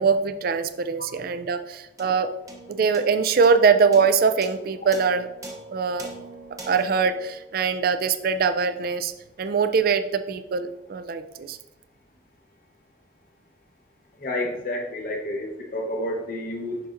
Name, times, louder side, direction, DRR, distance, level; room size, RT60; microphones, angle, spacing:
voice 1, 0.0-2.3 2.7-5.3 5.7-6.1 6.7-9.1 9.4-11.6, right 5 dB, 55° right, 10 dB, 0.4 m, -22 dB
sound 1, 2.0-8.6, right 2 dB, 20° right, 0.8 m, -43 dB
voice 2, 14.2-16.9, left 1 dB, 50° left, 0 dB, 0.9 m, -30 dB
6.6 x 5.8 x 2.5 m, 0.93 s
head